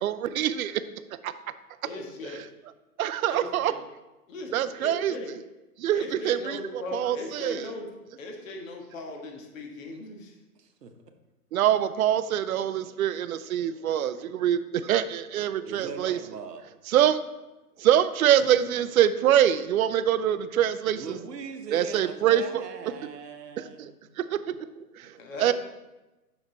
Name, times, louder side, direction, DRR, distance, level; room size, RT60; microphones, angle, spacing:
voice 1, 0.0-0.8 1.2-1.3 3.0-3.7 4.5-5.1 5.8-6.6 6.9-7.7 11.5-16.2 16.9-17.2 17.8-21.2 21.7-22.6 23.6-23.9 24.2-25.1 25.4-25.5, right 10 dB, 65° right, 13 dB, 0.6 m, -24 dB
voice 2, 1.8-2.5 3.3-3.8 4.3-5.3 5.9-7.9 8.2-10.4 18.4-18.5 25.2-25.5, left 2 dB, 55° left, 2 dB, 1.6 m, -39 dB
voice 3, 10.6-10.9 15.7-16.6 20.9-24.2, right 5 dB, 90° right, 6 dB, 1.1 m, -40 dB
7.4 x 5.8 x 4.0 m, 1.0 s
hypercardioid pair, 145°, 47 cm